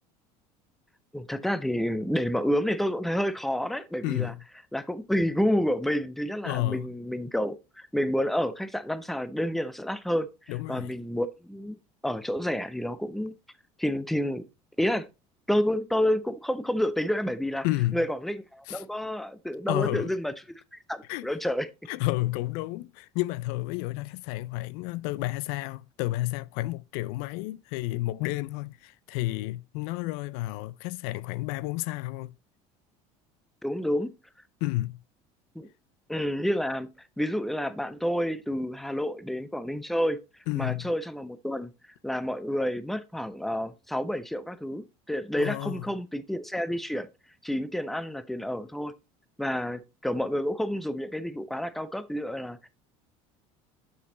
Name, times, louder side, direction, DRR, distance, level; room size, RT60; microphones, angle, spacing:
voice 1, 1.1-4.3 4.7-11.8 12.0-13.3 13.8-14.4 14.8-15.1 15.5-17.7 17.9-20.3 20.7-21.7 33.6-34.1 35.5-35.7 36.1-40.2 40.5-41.7 42.0-47.1 47.4-48.9 49.4-52.7, equal, ahead, 0.6 m, -29 dB
voice 2, 4.0-4.4 6.4-6.9 10.5-10.9 17.6-18.0 18.7-18.8 19.7-20.1 21.1-21.3 21.9-32.3 34.6-35.0 40.5-40.9 45.4-45.9, left 18 dB, 80° left, 0.4 m, -31 dB
6.7 x 5.5 x 3.8 m
supercardioid pair, 110°, 15 cm